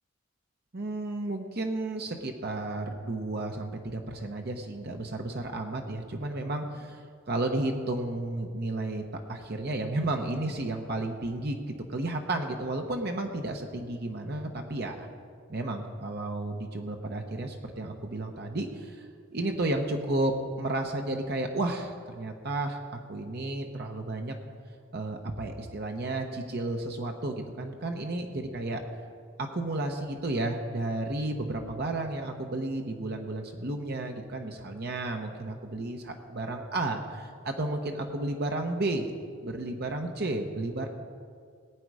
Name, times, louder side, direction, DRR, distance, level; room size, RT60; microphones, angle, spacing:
voice 1, 0.7-9.0 9.3-11.6 11.9-15.1 15.5-24.4 24.9-28.8 29.4-39.2 39.4-40.9, right 2 dB, 50° right, 3 dB, 1.0 m, -32 dB
19.5 x 9.3 x 4.9 m, 2.1 s
head